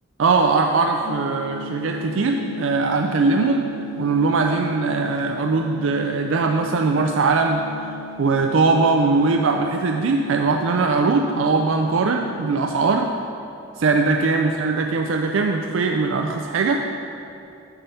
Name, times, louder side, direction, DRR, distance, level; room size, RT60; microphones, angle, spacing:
voice 1, 0.2-3.7 4.0-7.6 8.2-13.1 13.8-16.8, right 4 dB, 70° right, 3 dB, 0.4 m, -20 dB
sound 1, 1.0-13.0, left 2 dB, 85° left, 0.9 m, -37 dB
7.2 x 6.9 x 5.7 m, 2.7 s
head